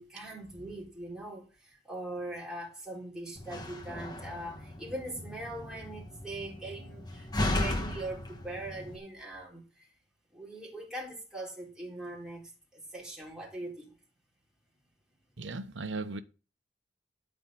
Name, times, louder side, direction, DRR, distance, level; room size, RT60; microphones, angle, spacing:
voice 1, 0.0-9.9 10.3-13.9, right 1 dB, 5° right, 3.8 m, -41 dB
Slam, 3.4-9.0, left 1 dB, 25° left, 1.4 m, -36 dB
voice 2, 15.4-16.2, right 3 dB, 80° right, 0.9 m, -37 dB
13.0 x 4.4 x 7.5 m
head